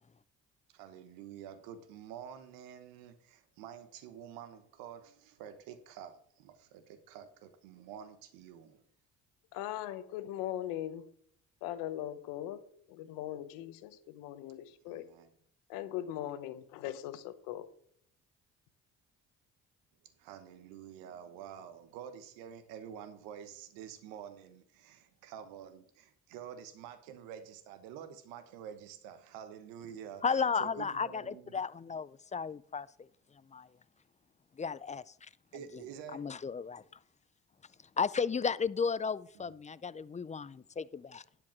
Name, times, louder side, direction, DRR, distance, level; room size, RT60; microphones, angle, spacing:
voice 1, 0.7-8.8 13.0-13.1 14.9-15.3 20.2-31.6 35.5-36.3 39.3-39.5, right 9 dB, 90° right, 1.1 m, -48 dB
voice 2, 9.5-11.1 11.6-12.6 12.9-15.1 15.7-17.7, left 12 dB, 90° left, 0.9 m, -40 dB
voice 3, 30.2-32.9 33.5-33.7 34.6-35.0 36.1-36.8 38.0-41.2, left 5 dB, 20° left, 0.4 m, -34 dB
10.5 x 5.1 x 6.0 m
supercardioid pair, 60°, 33 cm